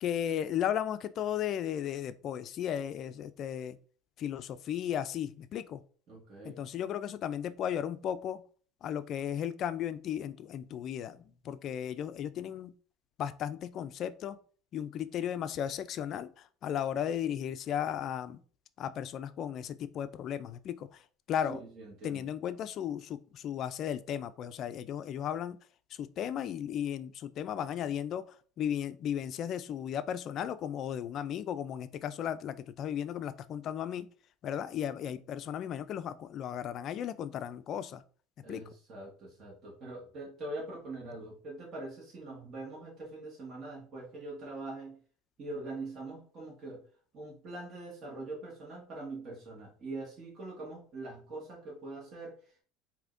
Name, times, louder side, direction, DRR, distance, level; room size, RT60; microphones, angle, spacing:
voice 1, 0.0-3.8 4.2-5.8 6.4-8.4 8.8-12.7 13.2-14.4 14.7-18.4 18.8-21.0 21.3-21.6 22.0-25.6 25.9-34.1 34.4-38.0 38.5-38.6, left 9 dB, 50° left, 13 dB, 0.3 m, -35 dB
voice 2, 6.1-6.6 21.4-22.3 38.4-45.0 45.4-46.8 47.1-52.6, right 2 dB, 45° right, -5 dB, 1.5 m, -43 dB
4.9 x 2.7 x 2.5 m, 0.42 s
supercardioid pair, 115°, 0 cm